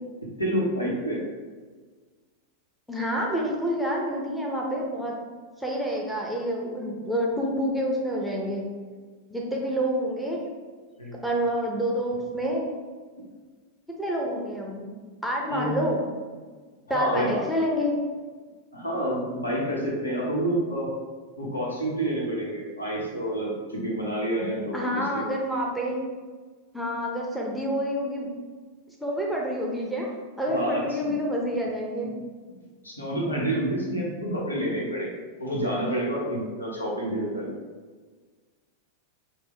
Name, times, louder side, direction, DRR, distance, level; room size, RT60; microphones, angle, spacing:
voice 1, 0.4-1.2 11.0-11.2 13.2-13.3 15.5-15.9 16.9-17.4 18.7-20.9 21.4-25.2 30.5-31.1 32.8-37.5, right 1 dB, 80° left, -4 dB, 1.0 m, -28 dB
voice 2, 2.9-5.2 5.6-8.7 9.3-10.4 11.2-12.8 14.0-14.8 15.2-16.0 16.9-18.0 24.7-26.0 26.7-28.3 29.0-30.1 30.4-32.1, equal, ahead, -3 dB, 0.7 m, -28 dB
6.0 x 2.2 x 3.2 m, 1.5 s
figure-of-eight pair, 90°, 0 cm